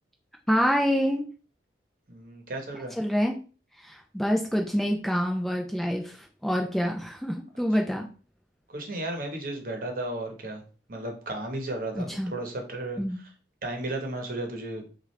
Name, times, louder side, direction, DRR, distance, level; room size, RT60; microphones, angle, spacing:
voice 1, 0.5-1.2 3.0-3.3 3.8-8.1 12.0-12.3 13.0-13.2, equal, ahead, 1 dB, 0.5 m, -26 dB
voice 2, 2.1-2.9 8.7-10.6 10.9-13.3 13.6-14.9, right 2 dB, 50° right, 3 dB, 1.1 m, -34 dB
6.0 x 2.5 x 3.2 m, 0.37 s
head